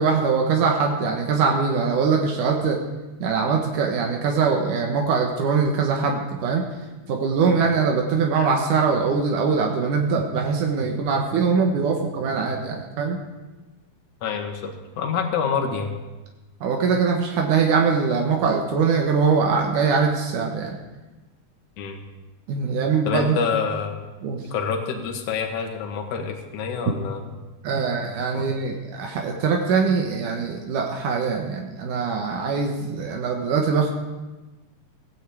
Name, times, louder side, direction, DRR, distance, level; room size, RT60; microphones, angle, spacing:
voice 1, 0.0-2.8 3.2-6.7 7.1-13.2 16.6-20.8 22.5-23.4 24.2-24.4 27.6-33.9, right 5 dB, 80° right, 1 dB, 2.9 m, -22 dB
voice 2, 14.2-15.9 21.8-22.0 23.0-24.0 24.5-27.2 28.3-28.5, left 6 dB, 70° left, 3 dB, 2.9 m, -27 dB
16.5 x 9.3 x 8.4 m, 1.2 s
omnidirectional pair, 3.6 m